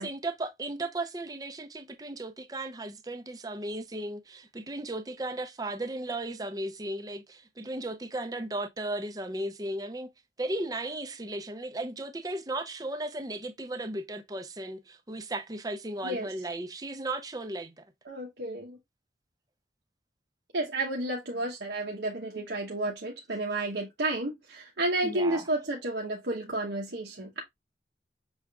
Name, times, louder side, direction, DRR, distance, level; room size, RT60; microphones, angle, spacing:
voice 1, 0.0-10.1 10.4-17.8 25.0-25.5, right 2 dB, 20° right, 0.6 m, -35 dB
voice 2, 18.1-18.8 20.5-27.4, right 2 dB, 80° right, 1.0 m, -31 dB
6.2 x 3.5 x 2.3 m
head